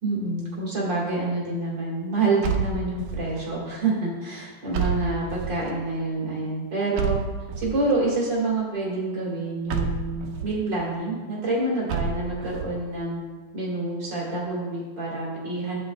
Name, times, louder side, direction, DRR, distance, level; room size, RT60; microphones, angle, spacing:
voice 1, 0.0-7.2 7.6-13.2 13.5-15.8, right 2 dB, 40° right, -6 dB, 1.7 m, -27 dB
sound 1, 2.4-3.4 4.7-5.7 7.0-7.9 9.7-10.6 11.9-12.7, right 5 dB, 85° right, 1.7 m, -29 dB
12.5 x 8.5 x 2.3 m, 1.4 s
omnidirectional pair, 4.4 m